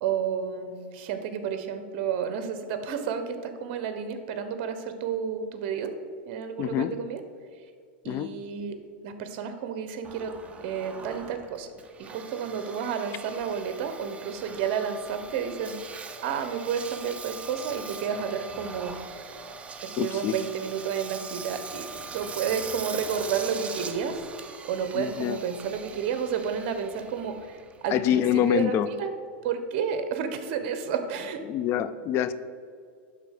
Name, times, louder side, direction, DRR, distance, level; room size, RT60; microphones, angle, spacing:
voice 1, 0.0-5.9 6.3-7.2 8.0-8.8 9.0-10.3 10.6-11.7 12.0-19.0 19.8-24.2 24.6-28.7 29.0-29.1 29.4-31.4, right 7 dB, 55° right, 8 dB, 1.0 m, -31 dB
voice 2, 6.6-6.9 8.1-8.3 20.0-20.4 24.9-25.4 27.9-28.9 31.5-32.3, left 10 dB, 40° left, 13 dB, 0.4 m, -25 dB
Engine, 10.0-28.5, right 4 dB, 20° right, 0.7 m, -41 dB
11.0 x 3.8 x 6.6 m, 2.1 s
supercardioid pair, 130°, 6 cm